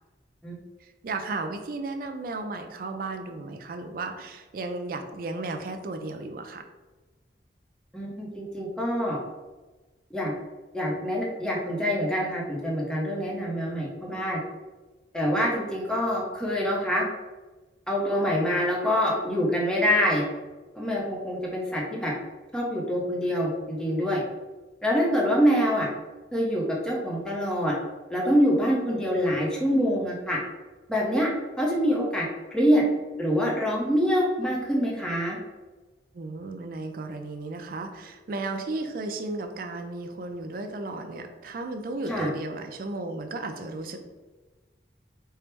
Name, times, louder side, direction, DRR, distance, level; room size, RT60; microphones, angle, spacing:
voice 1, 1.0-6.7 36.1-44.0, right 2 dB, 50° right, 6 dB, 0.4 m, -34 dB
voice 2, 7.9-9.2 10.1-10.3 10.7-14.4 15.1-17.0 17.9-20.3 20.7-22.1 22.5-24.2 24.8-25.9 26.3-27.7 28.1-30.4 30.9-31.3 31.6-32.8 33.2-35.4 42.1-42.3, equal, 5° left, -4 dB, 0.6 m, -25 dB
4.4 x 2.0 x 3.3 m, 1.2 s
head